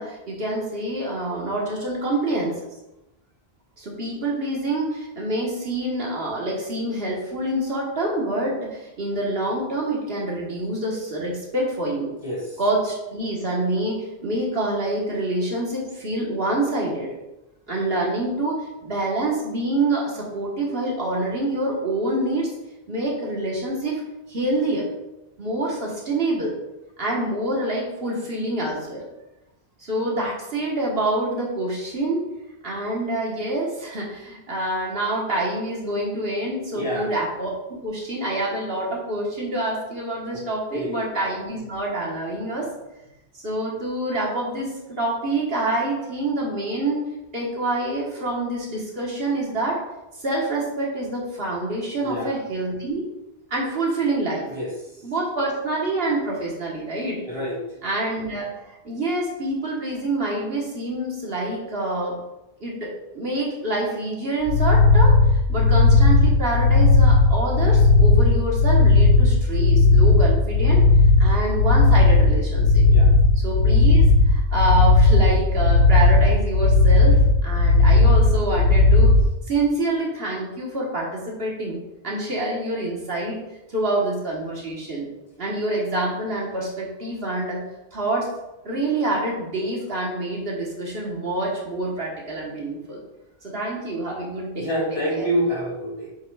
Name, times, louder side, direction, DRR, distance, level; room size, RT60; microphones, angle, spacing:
voice 1, 0.0-2.5 3.8-12.1 12.6-17.1 17.7-22.5 22.9-24.0 24.3-24.8 25.4-26.5 27.0-29.0 29.8-32.2 32.6-42.7 43.3-47.1 47.3-49.8 50.1-53.0 53.5-54.5 55.0-57.2 57.8-62.2 62.6-62.9 63.1-70.8 71.2-72.8 73.3-79.2 79.5-81.8 82.0-83.4 83.7-85.1 85.4-87.6 87.9-88.3 88.6-93.0 93.4-95.3, right 2 dB, 65° right, -3 dB, 1.6 m, -26 dB
voice 2, 12.2-12.6 36.7-37.1 40.7-41.0 52.0-52.4 54.5-54.7 57.2-57.6 72.8-73.1 94.6-96.1, equal, 30° left, -5 dB, 2.3 m, -27 dB
sound 1, 64.5-79.2, left 3 dB, 85° left, 1.1 m, -15 dB
7.3 x 6.0 x 2.4 m, 0.94 s
omnidirectional pair, 1.1 m